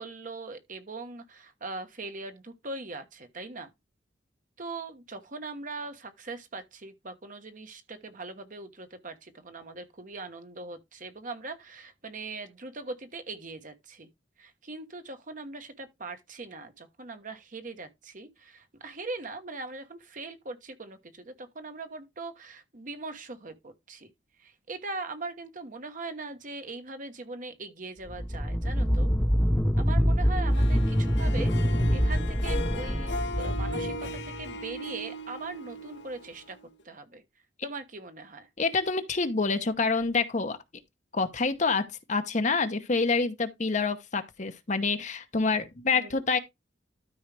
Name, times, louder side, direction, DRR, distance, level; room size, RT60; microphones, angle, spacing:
voice 1, 0.0-3.7 4.6-14.1 14.4-24.1 24.4-29.1 29.8-36.6 36.8-37.2 37.6-38.5 45.9-46.2, right 3 dB, 45° right, 1.1 m, -41 dB
sound 1, 28.1-34.5, equal, 10° left, 0.7 m, -25 dB
Harp, 30.5-36.8, left 1 dB, 65° left, 1.0 m, -38 dB
voice 2, 38.6-40.6 41.1-46.4, left 4 dB, 40° left, 0.9 m, -27 dB
12.5 x 4.8 x 3.3 m
head